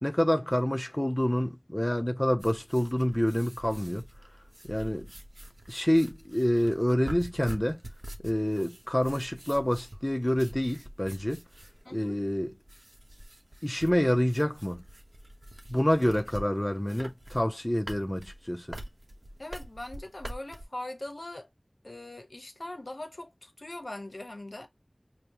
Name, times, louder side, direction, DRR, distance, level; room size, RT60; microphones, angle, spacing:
voice 1, 0.0-4.0 4.7-5.1 5.7-7.8 8.2-11.4 11.9-12.5 13.6-14.8 15.7-18.8, equal, 20° left, 0.5 m, -27 dB
sound 1, 2.4-20.7, right 1 dB, 65° right, 0.9 m, -46 dB
voice 2, 11.8-12.2 19.4-21.5 21.8-24.7, left 1 dB, 70° left, 0.8 m, -41 dB
5.1 x 2.1 x 2.9 m
wide cardioid pair, 40°, 0 cm